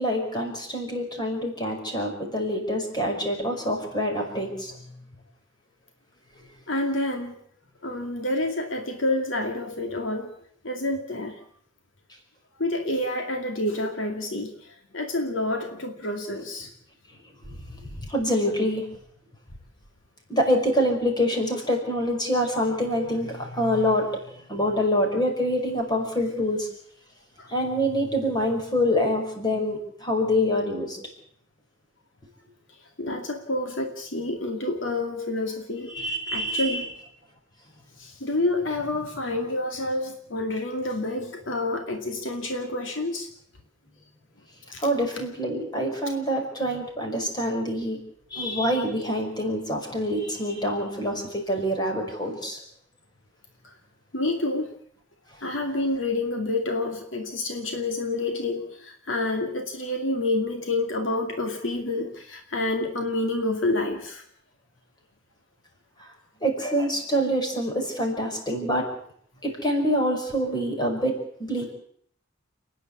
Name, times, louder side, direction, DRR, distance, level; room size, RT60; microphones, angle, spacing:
voice 1, 0.0-4.8 17.4-18.9 20.3-24.2 24.5-26.7 27.5-31.0 35.9-36.8 44.8-48.0 48.3-52.6 66.0-66.1 66.4-68.9 69.4-71.7, equal, 20° left, 2 dB, 5.5 m, -26 dB
voice 2, 6.7-7.4 7.8-10.3 10.6-11.4 12.6-16.7 27.4-27.5 33.0-36.0 36.3-36.9 38.0-43.3 44.7-44.9 53.6-53.7 54.1-54.7 55.4-64.2, left 2 dB, 75° left, 4 dB, 2.4 m, -28 dB
30.0 x 10.0 x 8.5 m, 0.63 s
head